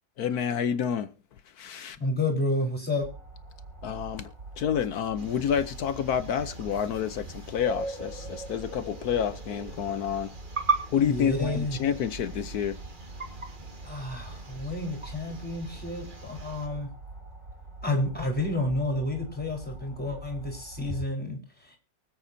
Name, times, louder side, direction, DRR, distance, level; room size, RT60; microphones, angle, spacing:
voice 1, 0.2-1.1 1.6-2.0 3.8-4.3 4.6-10.3 10.9-12.8, left 8 dB, 65° left, 1.2 m, -29 dB
voice 2, 2.0-3.1 11.0-11.8 13.8-16.9 17.8-21.8, left 1 dB, 5° left, 4.3 m, -30 dB
sound 1, 3.0-21.0, right 2 dB, 70° right, 5.9 m, -43 dB
sound 2, 5.2-16.7, right 3 dB, 30° right, 1.8 m, -38 dB
24.0 x 8.1 x 2.7 m
omnidirectional pair, 2.0 m